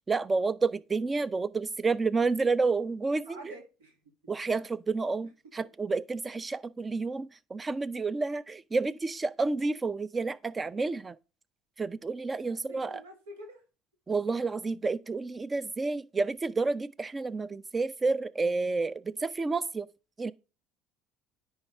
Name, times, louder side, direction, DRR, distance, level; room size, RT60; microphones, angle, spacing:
voice 1, 0.1-3.5 4.3-11.2 11.8-13.0 14.1-19.9 20.2-20.3, right 3 dB, 25° right, 0.5 m, -30 dB
voice 2, 3.2-4.0 12.4-13.6, right 1 dB, 85° right, 1.6 m, -48 dB
9.6 x 4.7 x 3.5 m
hypercardioid pair, 75°, 0 cm